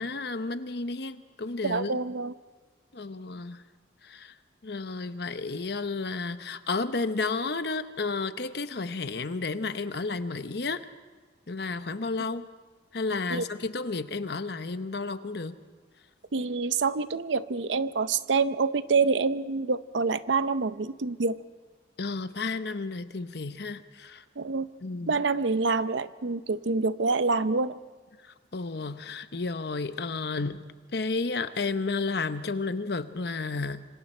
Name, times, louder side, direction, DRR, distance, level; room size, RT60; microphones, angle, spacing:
voice 1, 0.0-2.0 2.9-3.6 4.0-4.3 4.6-10.8 11.5-12.5 12.9-15.6 22.0-24.2 24.8-25.1 28.2-30.6 30.9-33.9, left 3 dB, 60° left, 11 dB, 0.9 m, -32 dB
voice 2, 1.6-2.3 13.3-13.4 16.3-21.4 24.4-24.7 25.1-27.8, right 4 dB, 80° right, 14 dB, 0.7 m, -26 dB
26.5 x 25.0 x 4.4 m, 1.4 s
head